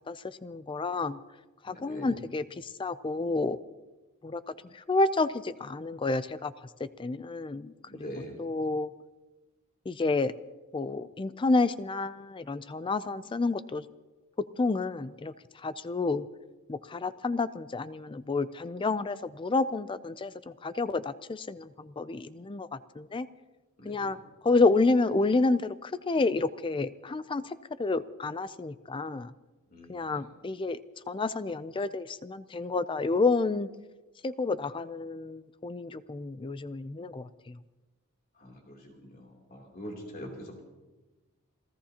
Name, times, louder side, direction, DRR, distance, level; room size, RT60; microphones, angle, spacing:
voice 1, 0.4-1.2 1.7-2.4 2.8-3.6 4.2-4.4 4.9-6.5 7.0-7.7 8.0-8.1 8.4-8.9 9.9-10.3 10.7-13.8 14.6-15.3 15.6-16.2 16.7-23.3 23.9-24.2 24.4-29.3 29.9-30.8 31.1-33.7 34.2-37.2, left 3 dB, 25° left, 14 dB, 0.4 m, -29 dB
voice 2, 1.6-2.2 7.9-8.4 23.8-24.2 29.7-30.2 38.4-40.6, equal, 45° left, 0 dB, 3.0 m, -44 dB
28.5 x 16.5 x 2.9 m, 1.2 s
head